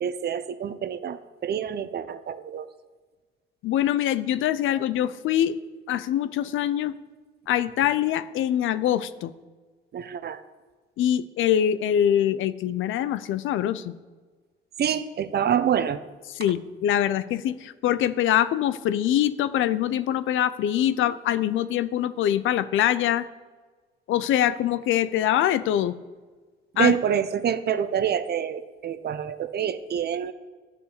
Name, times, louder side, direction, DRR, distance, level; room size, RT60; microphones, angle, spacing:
voice 1, 0.0-2.7 9.9-10.4 14.8-16.0 26.8-30.3, right 9 dB, 55° right, 12 dB, 0.8 m, -26 dB
voice 2, 3.6-5.6 5.9-7.0 7.5-9.3 11.0-13.9 16.3-23.3 24.1-26.0 26.8-27.0, left 11 dB, 80° left, 15 dB, 0.6 m, -24 dB
11.0 x 6.9 x 6.6 m, 1.4 s
cardioid pair, 90°, 20 cm